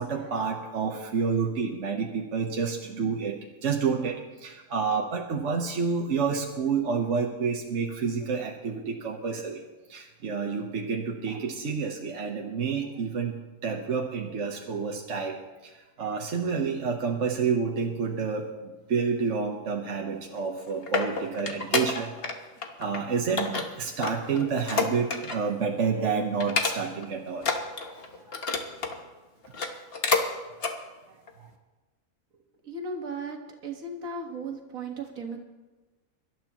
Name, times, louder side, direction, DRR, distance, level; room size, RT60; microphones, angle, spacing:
voice 1, 0.0-9.6 9.9-22.3 22.8-27.5 31.4-31.5, right 5 dB, 65° right, 1 dB, 1.3 m, -29 dB
sound 1, 20.4-22.4 22.6-23.0 23.4-25.5 25.8-26.0 26.4-27.1 27.4-29.0 29.4-30.3 30.6-30.8 31.3-31.4, left 4 dB, 45° left, 1.3 m, -29 dB
voice 2, 32.6-33.4 33.6-35.4, right 3 dB, 85° right, 3 dB, 2.0 m, -36 dB
24.0 x 12.5 x 3.0 m, 1.2 s
omnidirectional pair, 1.4 m